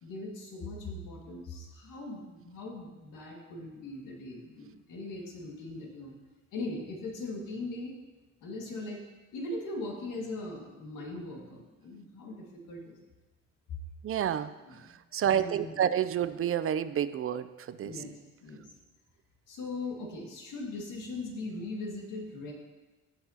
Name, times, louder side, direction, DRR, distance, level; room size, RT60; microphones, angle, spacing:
voice 1, 0.0-6.2 6.5-7.9 8.4-9.0 9.3-13.0 13.7-13.8 14.2-14.4 14.7-14.9 15.3-15.8 17.8-18.1 18.4-18.7 19.5-22.5, left 2 dB, 85° left, 0 dB, 2.0 m, -40 dB
voice 2, 14.0-14.5 15.1-17.9, right 9 dB, 45° right, 14 dB, 0.4 m, -29 dB
16.0 x 5.9 x 2.8 m, 1.2 s
cardioid pair, 90°, 30 cm